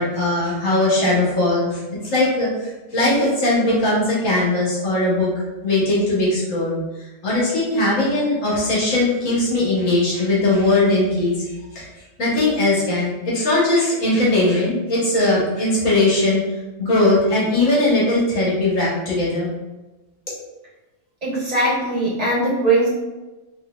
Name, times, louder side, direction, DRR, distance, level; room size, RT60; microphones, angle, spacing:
voice 1, 0.0-6.8 7.2-11.9 12.2-16.4 16.8-19.5, left 2 dB, 65° left, -7 dB, 1.6 m, -19 dB
voice 2, 21.2-22.9, right 2 dB, 30° right, -7 dB, 1.2 m, -20 dB
3.9 x 2.9 x 2.3 m, 1.1 s
omnidirectional pair, 1.4 m